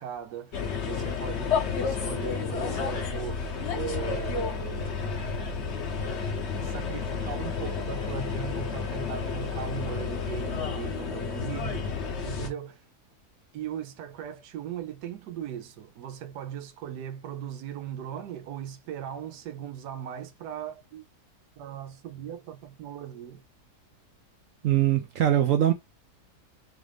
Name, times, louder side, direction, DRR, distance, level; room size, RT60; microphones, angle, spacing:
voice 1, 0.0-4.9 5.5-5.8 6.3-12.8 13.5-21.0 21.6-23.4, right 9 dB, 90° right, 1.3 m, -39 dB
sound 1, 0.5-12.5, left 5 dB, 50° left, 1.0 m, -31 dB
voice 2, 24.6-25.7, right 12 dB, 70° right, 0.8 m, -22 dB
4.2 x 2.5 x 3.3 m
omnidirectional pair, 1.7 m